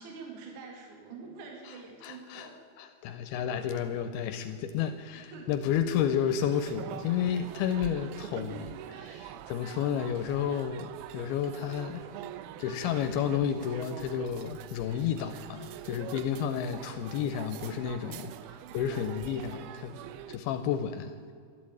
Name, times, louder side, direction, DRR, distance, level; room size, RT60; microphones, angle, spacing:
voice 1, 0.0-2.6 5.1-5.7, right 4 dB, 55° right, 3.0 m, -46 dB
voice 2, 2.0-12.1 12.6-20.0 20.3-21.3, left 8 dB, 85° left, 2.5 m, -31 dB
sound 1, 6.4-20.4, right 11 dB, 80° right, 2.5 m, -44 dB
12.5 x 9.6 x 8.7 m
omnidirectional pair, 4.5 m